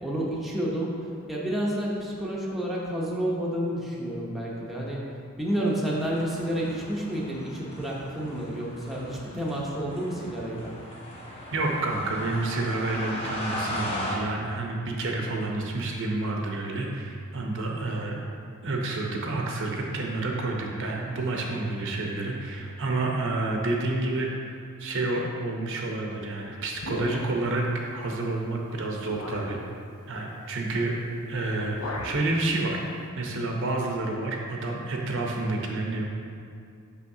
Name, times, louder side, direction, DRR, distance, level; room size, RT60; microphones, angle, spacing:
voice 1, 0.0-5.1 5.4-10.8, right 1 dB, ahead, -5 dB, 0.7 m, -30 dB
sound 1, 5.5-14.2, left 1 dB, 25° left, 0.8 m, -38 dB
voice 2, 11.5-18.2 18.6-24.3 24.8-27.7 27.9-29.6 30.1-31.0 31.3-32.8 33.2-36.1, right 2 dB, 60° right, 0 dB, 0.7 m, -29 dB
sound 2, 26.8-27.6 28.4-28.6 29.1-29.6 31.0-31.2 31.5-32.3, left 2 dB, 90° left, 0.7 m, -37 dB
6.2 x 5.6 x 2.7 m, 2.4 s
head